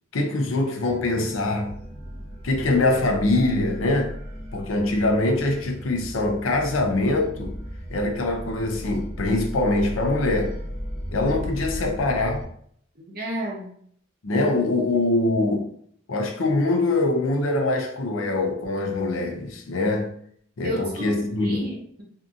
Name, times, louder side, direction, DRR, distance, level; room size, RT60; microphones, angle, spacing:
voice 1, 0.1-1.7 2.4-4.1 4.5-7.5 7.9-10.5 11.1-12.4 14.2-15.7 16.1-20.1 20.6-21.7, left 2 dB, 80° left, 0.5 m, -23 dB
sound 1, 0.9-12.4, equal, 15° left, 0.9 m, -36 dB
voice 2, 13.0-13.7 20.6-21.1 21.4-22.0, right 1 dB, 45° right, 0.7 m, -32 dB
2.7 x 2.5 x 2.4 m
head